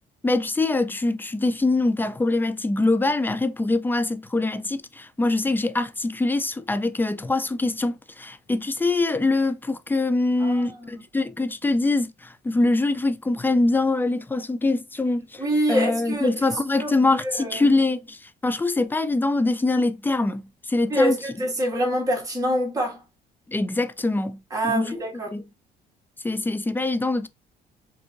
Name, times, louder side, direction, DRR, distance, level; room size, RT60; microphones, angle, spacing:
voice 1, 0.2-15.4 15.7-21.2 23.5-25.0 25.3-25.4 26.2-27.3, left 2 dB, 10° left, 0.3 m, -24 dB
voice 2, 10.4-10.9 15.4-17.7 20.9-23.0 24.5-25.3, equal, 20° right, 1.8 m, -26 dB
4.4 x 2.7 x 2.5 m
cardioid pair, 110°, 17 cm